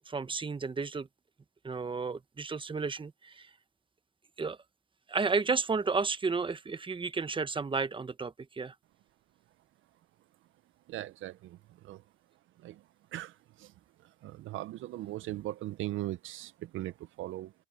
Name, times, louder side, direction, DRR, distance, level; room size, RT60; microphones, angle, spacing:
voice 1, 0.1-1.1 1.6-3.5 4.4-4.6 5.1-8.7, right 4 dB, 25° right, 1.1 m, -32 dB
voice 2, 10.9-11.6 11.8-12.0 12.6-12.8 13.1-13.7 14.2-17.5, right 15 dB, 80° right, 0.6 m, -39 dB
open air
cardioid pair, 90°, 20 cm